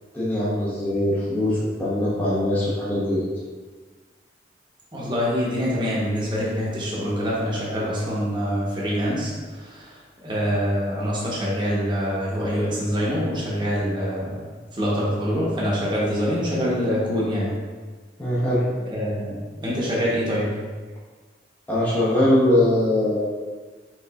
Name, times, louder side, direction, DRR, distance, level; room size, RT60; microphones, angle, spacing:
voice 1, 0.1-3.2 18.2-18.6 21.7-23.2, left 1 dB, 10° left, -9 dB, 0.9 m, -21 dB
voice 2, 4.9-9.9 10.2-14.4 14.7-17.5 18.9-19.4 19.6-20.5, equal, 25° right, -6 dB, 1.0 m, -25 dB
4.5 x 3.9 x 2.4 m, 1.4 s
head